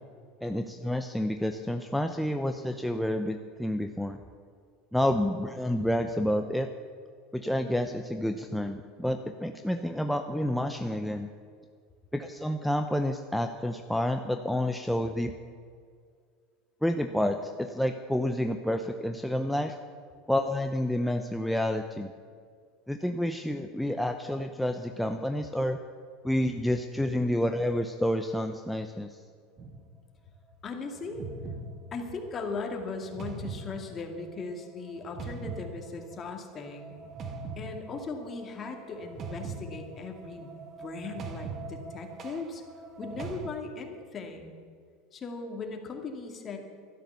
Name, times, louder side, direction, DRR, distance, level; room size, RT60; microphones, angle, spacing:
voice 1, 0.4-4.2 4.9-6.7 7.3-11.3 12.1-15.3 16.8-19.8 20.3-22.1 22.9-25.8 26.2-29.2, left 1 dB, ahead, 5 dB, 0.7 m, -29 dB
sound 1, 29.6-30.0 31.0-43.5, right 4 dB, 35° right, 1.4 m, -42 dB
voice 2, 30.6-31.3 31.9-37.0 37.6-40.5 40.8-42.6 43.0-44.6 45.1-46.6, left 4 dB, 30° left, 3 dB, 2.2 m, -38 dB
12.0 x 12.0 x 6.9 m, 2.1 s
supercardioid pair, 110°, 0 cm